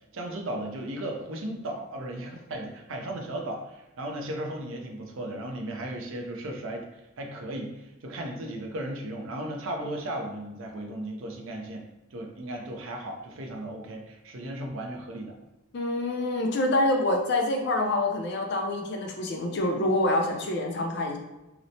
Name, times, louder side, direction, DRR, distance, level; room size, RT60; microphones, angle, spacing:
voice 1, 0.1-15.4, right 1 dB, 70° right, 2 dB, 0.5 m, -36 dB
voice 2, 15.7-21.2, left 1 dB, 55° left, 2 dB, 0.5 m, -26 dB
2.9 x 2.0 x 2.6 m, 1.0 s
head